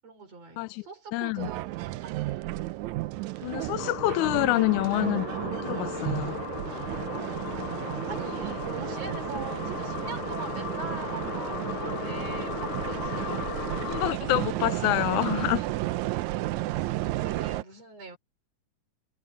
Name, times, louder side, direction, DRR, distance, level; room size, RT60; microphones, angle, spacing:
voice 1, 0.0-1.6 2.0-2.2 7.5-13.5 17.1-18.2, right 4 dB, 60° right, 5.7 m, -42 dB
voice 2, 0.6-0.9 1.1-1.5 3.4-6.4 13.8-15.7, left 18 dB, 90° left, 2.1 m, -27 dB
sound 1, 1.4-17.6, right 17 dB, 85° right, 2.0 m, -33 dB
sound 2, 3.8-14.1, left 12 dB, 70° left, 1.3 m, -37 dB
omnidirectional pair, 3.4 m